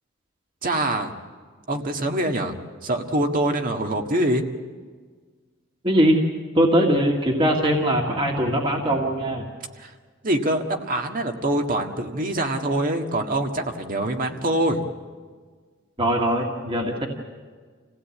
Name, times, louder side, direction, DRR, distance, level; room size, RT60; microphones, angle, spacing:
voice 1, 0.6-1.1 1.7-2.5 2.8-4.4 9.8-9.9 10.2-14.9, right 1 dB, 45° right, 4 dB, 1.7 m, -24 dB
voice 2, 5.8-6.2 6.5-9.5 16.0-17.1, right 1 dB, 25° right, 0 dB, 2.0 m, -21 dB
27.5 x 16.5 x 8.5 m, 1.5 s
head